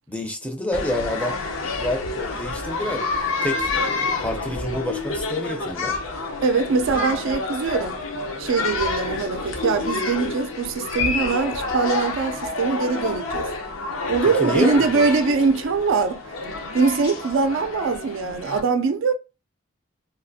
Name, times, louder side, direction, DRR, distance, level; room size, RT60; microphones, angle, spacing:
voice 1, 0.1-1.4 1.8-6.0 14.4-15.1, left 1 dB, 5° left, 0.5 m, -28 dB
sound 1, 0.7-18.6, left 3 dB, 80° left, 0.7 m, -28 dB
voice 2, 6.4-8.0 8.4-13.5 14.1-16.2 16.7-19.2, right 4 dB, 70° right, 0.4 m, -22 dB
3.2 x 2.4 x 2.6 m
head